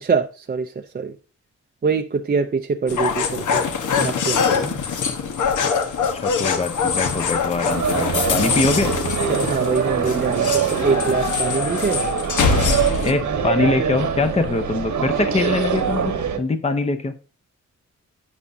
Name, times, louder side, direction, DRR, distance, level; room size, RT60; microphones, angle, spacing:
voice 1, 0.0-1.2 1.8-4.8 9.3-12.1, right 5 dB, 30° right, 0.5 m, -24 dB
sound 1, 2.9-13.1, left 6 dB, 80° left, 1.3 m, -23 dB
voice 2, 6.1-9.0 13.0-17.1, left 3 dB, 20° left, 0.7 m, -23 dB
sound 2, 7.7-16.4, right 7 dB, 75° right, 1.3 m, -24 dB
11.0 x 8.2 x 2.7 m
wide cardioid pair, 120°, 30 cm